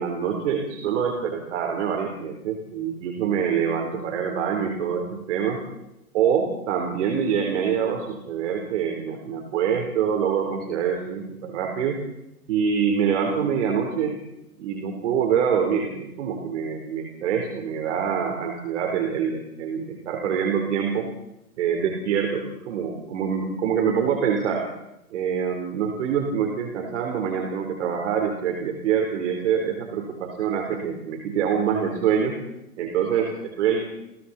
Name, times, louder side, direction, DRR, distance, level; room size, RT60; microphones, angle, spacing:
voice 1, 0.0-5.6 6.1-12.0 12.5-14.2 14.6-21.1 21.6-24.6 25.1-32.3 32.8-33.8, right 7 dB, 55° right, 2 dB, 4.3 m, -25 dB
29.0 x 22.0 x 4.4 m, 0.90 s
hypercardioid pair, 135°, 44 cm